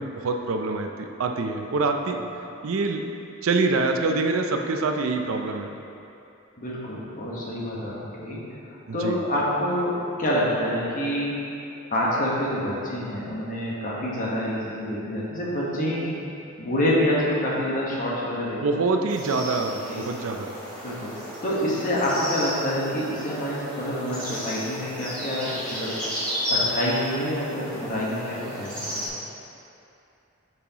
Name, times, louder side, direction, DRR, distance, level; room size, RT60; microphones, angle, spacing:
voice 1, 0.0-2.2 2.6-3.0 3.4-5.7 8.9-9.2 18.6-20.5, right 3 dB, 75° right, 4 dB, 0.5 m, -25 dB
voice 2, 6.6-7.9 8.2-8.4 8.9-11.3 11.9-16.2 16.6-18.6 19.9-20.0 20.8-21.1 21.4-25.9 26.5-29.1, equal, 40° left, -5 dB, 1.3 m, -27 dB
sound 1, 19.1-29.1, left 1 dB, 5° left, 1.6 m, -33 dB
8.3 x 5.7 x 3.0 m, 2.7 s
head